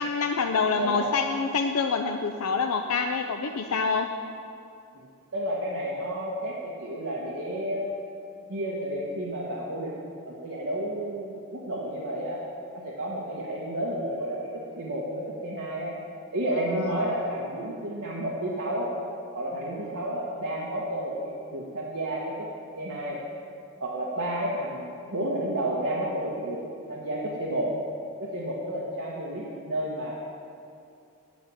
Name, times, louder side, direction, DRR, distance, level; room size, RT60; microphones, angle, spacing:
voice 1, 0.0-4.1 16.7-17.1, left 5 dB, 80° left, 5 dB, 0.5 m, -26 dB
voice 2, 0.7-1.1 4.9-5.1 5.3-7.9 8.5-9.9 10.2-12.4 12.7-15.9 16.3-18.9 19.3-22.3 22.8-23.2 23.8-26.6 26.9-27.7 28.2-30.2, right 1 dB, 65° right, -5 dB, 1.4 m, -31 dB
7.8 x 7.6 x 8.7 m, 2.5 s
head